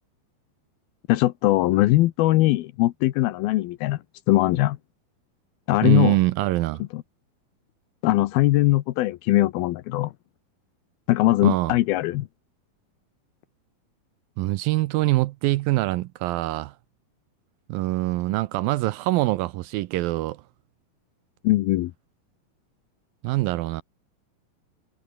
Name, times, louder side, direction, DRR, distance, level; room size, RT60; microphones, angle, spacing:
voice 1, 1.1-4.0 4.3-4.8 5.7-6.2 6.9-7.0 8.0-10.1 11.1-12.3 21.4-21.9, left 17 dB, 85° left, 2.7 m, -21 dB
voice 2, 5.8-6.8 11.4-11.8 14.4-16.7 17.7-20.4 23.2-23.8, right 18 dB, 80° right, 2.3 m, -24 dB
omnidirectional pair, 4.4 m